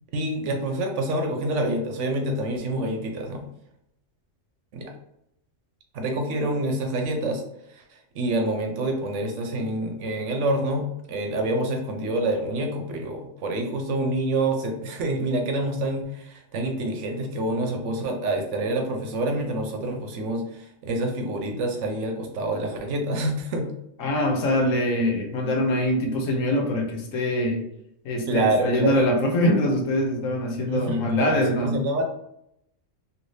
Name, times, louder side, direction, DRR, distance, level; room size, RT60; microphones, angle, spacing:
voice 1, 0.1-3.4 4.7-4.9 5.9-7.4 7.7-23.7 28.3-29.1 30.7-32.0, right 1 dB, 70° right, 4 dB, 1.0 m, -27 dB
voice 2, 24.0-27.6 28.0-31.8, left 1 dB, 90° left, 3 dB, 1.1 m, -23 dB
3.2 x 2.7 x 2.6 m, 0.79 s
omnidirectional pair, 1.3 m